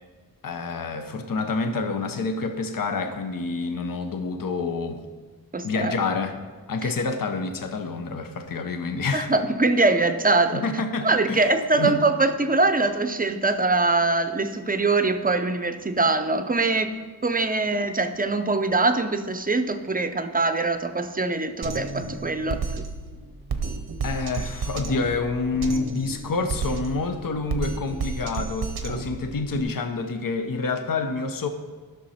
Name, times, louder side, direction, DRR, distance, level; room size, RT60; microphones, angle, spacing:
voice 1, 0.4-5.0 5.6-6.4 6.7-9.3 10.5-12.0 24.0-31.5, left 4 dB, 65° left, 7 dB, 0.8 m, -28 dB
voice 2, 5.5-5.9 9.1-10.6 11.0-16.9 17.2-22.8, right 3 dB, 25° right, 9 dB, 0.6 m, -23 dB
Drum kit, 21.6-29.6, right 4 dB, 90° right, 0.9 m, -32 dB
12.0 x 6.2 x 4.2 m, 1.4 s
wide cardioid pair, 100°, 36 cm